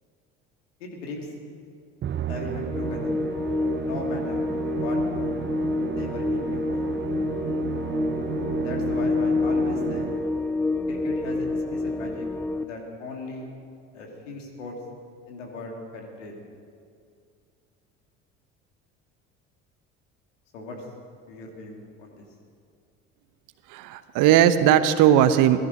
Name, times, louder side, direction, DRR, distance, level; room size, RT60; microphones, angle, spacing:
voice 1, 0.8-1.3 2.3-3.1 3.7-4.4 4.7-5.4 6.0-6.8 8.5-10.1 10.9-12.3 12.6-13.5 13.9-14.7 15.3-16.3 20.5-20.8 21.3-22.2, left 3 dB, 80° left, 0 dB, 2.7 m, -37 dB
Musical instrument, 2.0-10.5, right 8 dB, 30° right, 0.7 m, -33 dB
sound 1, 2.7-12.6, left 3 dB, 5° left, 0.5 m, -27 dB
voice 2, 23.7-25.6, right 10 dB, 60° right, 12 dB, 1.0 m, -18 dB
17.5 x 14.0 x 5.3 m, 2.3 s
hypercardioid pair, 65°, 36 cm